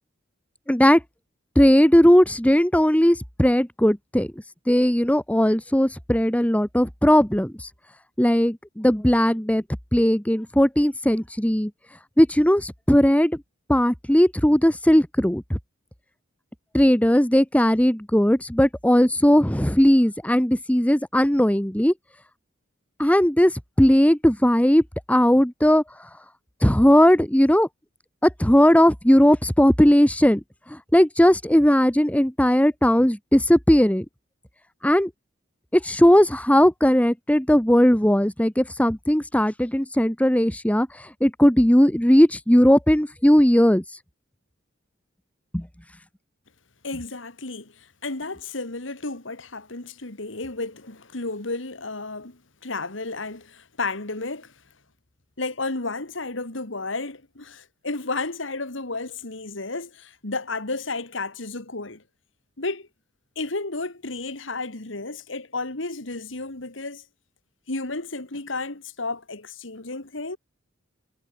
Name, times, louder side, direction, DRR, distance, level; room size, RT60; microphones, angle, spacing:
voice 1, 0.7-1.0 1.5-4.3 4.7-7.7 8.2-9.6 9.9-11.7 12.2-13.4 13.7-15.6 16.7-21.9 23.0-25.8 26.6-27.7 28.2-30.4 30.7-34.0 34.8-35.1 35.7-40.9 41.2-43.8 45.5-45.7, equal, 5° left, 1.5 m, -18 dB
voice 2, 46.8-54.5 55.4-62.0 62.6-62.9 63.4-67.0 67.7-70.4, left 3 dB, 70° left, 2.5 m, -32 dB
head